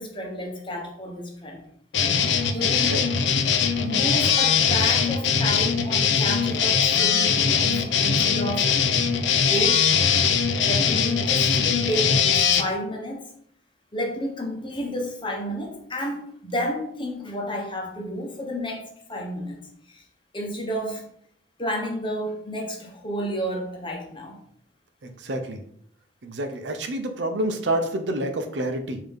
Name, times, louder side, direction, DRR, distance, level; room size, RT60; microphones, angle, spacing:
voice 1, 0.0-1.6 2.5-3.1 3.8-8.7 9.5-9.9 10.6-13.3 13.9-19.6 19.9-20.0 20.3-21.0 21.6-24.4, equal, 30° left, 0 dB, 0.9 m, -31 dB
sound 1, 1.9-12.6, left 6 dB, 80° left, 0.5 m, -21 dB
voice 2, 2.6-3.0 25.0-25.6 26.2-29.0, right 1 dB, 70° right, 6 dB, 0.6 m, -28 dB
5.3 x 2.8 x 3.5 m, 0.65 s
head